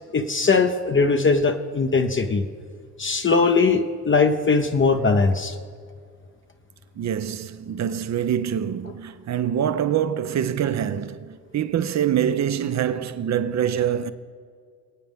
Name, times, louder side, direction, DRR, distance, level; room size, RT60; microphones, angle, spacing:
voice 1, 0.1-2.4 3.0-5.6, left 4 dB, 25° left, 0.9 m, -20 dB
voice 2, 7.0-14.1, right 9 dB, 35° right, 0.8 m, -25 dB
26.0 x 9.0 x 3.6 m
hypercardioid pair, 55°, 45 cm